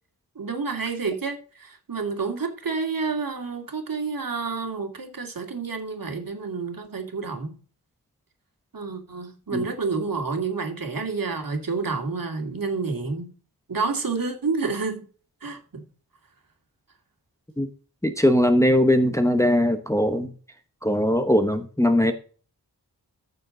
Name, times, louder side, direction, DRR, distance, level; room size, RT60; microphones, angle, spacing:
voice 1, 0.4-7.6 8.7-13.3 13.7-15.0 15.4-15.8, right 4 dB, 55° right, 2.5 m, -29 dB
voice 2, 18.0-20.3 20.8-22.1, left 1 dB, 5° left, 1.0 m, -20 dB
14.0 x 6.9 x 3.9 m
wide cardioid pair, 115°, 40 cm